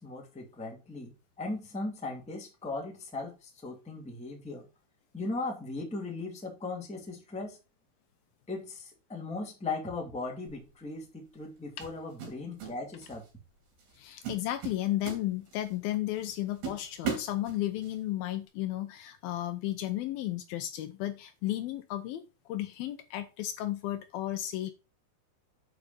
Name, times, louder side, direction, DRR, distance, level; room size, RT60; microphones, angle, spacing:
voice 1, 0.0-4.7 5.1-7.6 8.5-13.2, left 3 dB, 5° left, 1.4 m, -38 dB
sound 1, 10.5-10.7 11.8-12.8 13.0-13.3 13.8-14.0 14.2-15.7 16.2-16.3 16.6-17.9, right 6 dB, 75° right, 4.9 m, -37 dB
voice 2, 14.0-22.2 22.5-24.7, left 14 dB, 75° left, 2.4 m, -33 dB
9.1 x 5.0 x 5.4 m
omnidirectional pair, 4.6 m